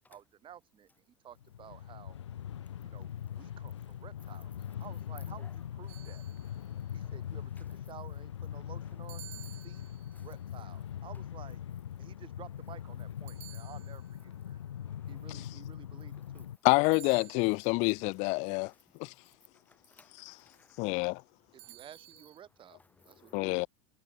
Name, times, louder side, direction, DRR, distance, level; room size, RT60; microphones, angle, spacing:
voice 1, 0.1-2.2 2.8-3.1 3.4-6.2 6.9-9.2 9.6-9.8 10.2-11.6 12.0-14.6 15.1-16.5 21.5-23.6, right 10 dB, 35° right, 1.9 m, -53 dB
Train, 1.4-16.6, left 10 dB, 80° left, 0.9 m, -42 dB
sound 1, 5.9-6.8 9.1-10.3 13.3-14.3 16.8-17.8 21.6-22.4, right 21 dB, 65° right, 5.3 m, -53 dB
voice 2, 6.7-7.2 10.2-10.3 14.9-15.0 16.1-16.3 19.7-20.1 20.5-20.8 23.0-23.7, left 3 dB, 10° left, 2.3 m, -62 dB
voice 3, 16.6-18.7 19.0-19.1 20.2-20.4 20.8-21.2 23.3-23.7, left 28 dB, 50° left, 0.5 m, -27 dB
hypercardioid pair, 85°, 15 cm